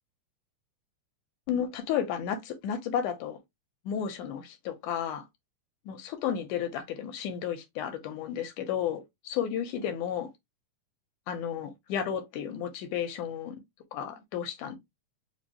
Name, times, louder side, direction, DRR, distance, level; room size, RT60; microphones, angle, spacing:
voice 1, 1.5-3.4 3.9-5.3 5.9-10.3 11.3-13.6 13.9-14.8, left 8 dB, 80° left, 2.1 m, -32 dB
5.3 x 2.2 x 2.9 m
omnidirectional pair, 3.7 m